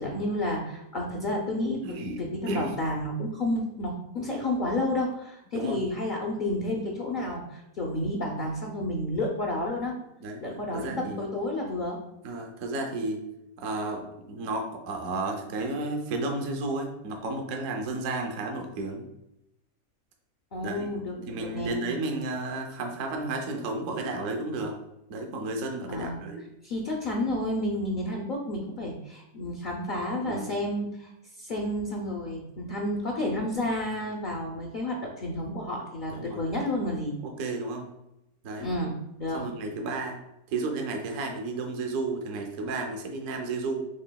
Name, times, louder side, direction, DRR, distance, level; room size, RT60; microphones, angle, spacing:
voice 1, 0.0-10.0 10.4-12.0 20.5-21.8 25.9-26.2 26.6-31.1 31.4-37.1 38.6-38.9 39.2-39.4, left 1 dB, 65° left, -1 dB, 0.4 m, -31 dB
voice 2, 1.8-2.2 2.5-2.7 5.5-5.8 10.2-10.4 10.7-11.2 12.2-13.2 13.6-19.0 20.6-20.9 21.3-24.8 25.1-26.4 30.2-30.5 36.1-36.4 37.2-37.9 38.4-38.7 39.3-40.2 40.5-43.8, right 2 dB, 65° right, 3 dB, 0.9 m, -32 dB
5.4 x 3.4 x 2.2 m, 0.87 s
omnidirectional pair, 1.6 m